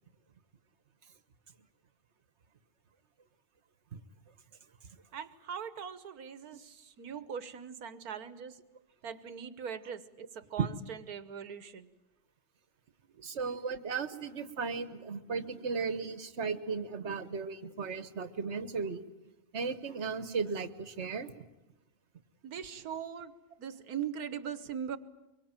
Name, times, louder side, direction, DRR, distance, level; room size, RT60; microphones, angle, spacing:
voice 1, 5.1-8.6 9.0-11.9 13.1-13.4 22.4-23.3 23.6-25.0, right 8 dB, 80° right, 13 dB, 1.7 m, -41 dB
voice 2, 13.2-19.0 19.5-21.3, right 5 dB, 50° right, 12 dB, 1.5 m, -35 dB
24.5 x 24.0 x 9.0 m, 0.94 s
omnidirectional pair, 1.6 m